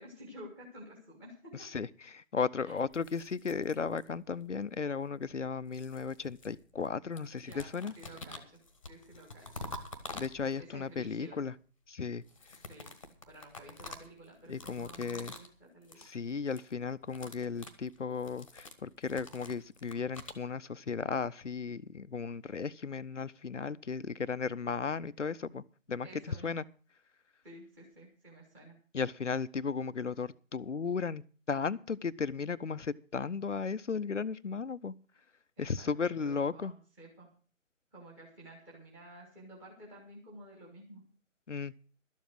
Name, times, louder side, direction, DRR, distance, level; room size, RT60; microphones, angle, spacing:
voice 1, 0.0-1.7 2.6-2.8 7.4-8.4 8.9-9.5 10.6-11.4 12.7-12.9 13.3-16.1 26.0-26.6 27.4-28.7 35.6-37.3 37.9-41.0, right 1 dB, 5° right, 1.4 m, -52 dB
voice 2, 1.5-7.9 10.1-11.5 11.9-12.2 14.5-15.3 16.0-26.6 28.9-34.9 35.6-36.7 41.5-41.7, left 5 dB, 65° left, 0.7 m, -35 dB
sound 1, 2.8-4.3 5.3-6.9 7.2-10.8 12.2-15.6 15.8-16.1 16.4-16.7 17.0-20.4, left 2 dB, 25° left, 1.2 m, -48 dB
12.5 x 7.4 x 7.7 m
figure-of-eight pair, 155°, 39 cm